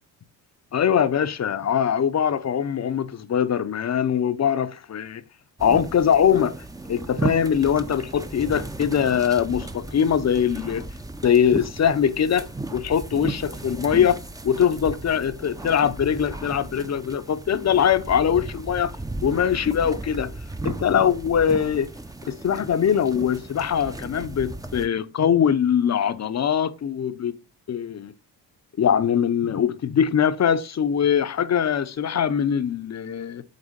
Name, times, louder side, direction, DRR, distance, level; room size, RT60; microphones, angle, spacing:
voice 1, 0.7-5.2 5.6-6.5 6.9-10.8 11.2-14.2 14.4-18.9 19.2-20.3 20.6-21.9 22.3-27.3 27.7-28.1 28.8-33.4, left 8 dB, 40° left, 0.7 m, -22 dB
sound 1, 5.6-24.9, right 2 dB, 10° right, 0.6 m, -35 dB
8.3 x 3.4 x 5.1 m
cardioid pair, 85°, 43 cm